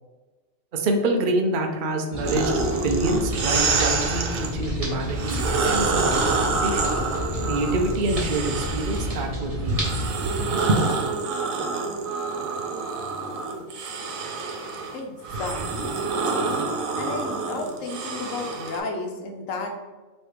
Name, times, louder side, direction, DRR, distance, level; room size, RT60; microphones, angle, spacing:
voice 1, 0.7-6.9 7.4-10.0 10.5-10.9, right 2 dB, 55° right, 3 dB, 0.6 m, -26 dB
sound 1, 2.1-10.1, equal, 30° right, 1.3 m, -30 dB
sound 2, 2.2-4.5 5.1-9.2 9.7-18.8, right 4 dB, 85° right, 1.1 m, -27 dB
voice 2, 14.9-16.0 17.0-19.8, left 3 dB, 80° left, 3 dB, 1.1 m, -33 dB
3.3 x 3.1 x 4.7 m, 1.2 s
omnidirectional pair, 1.4 m